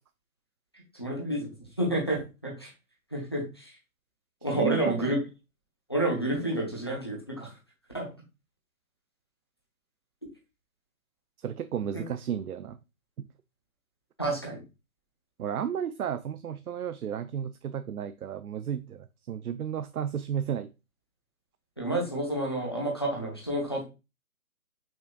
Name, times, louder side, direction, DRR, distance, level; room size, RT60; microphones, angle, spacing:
voice 1, 0.9-2.7 3.1-3.7 4.4-5.2 5.9-7.5 7.9-8.1 11.9-12.0 14.2-14.6 21.8-23.8, right 1 dB, 20° left, 0.7 m, -30 dB
voice 2, 4.6-5.2 11.4-12.8 13.2-13.3 15.4-20.7, right 9 dB, 85° right, 0.6 m, -33 dB
6.1 x 3.8 x 2.2 m
hypercardioid pair, 175°, 43 cm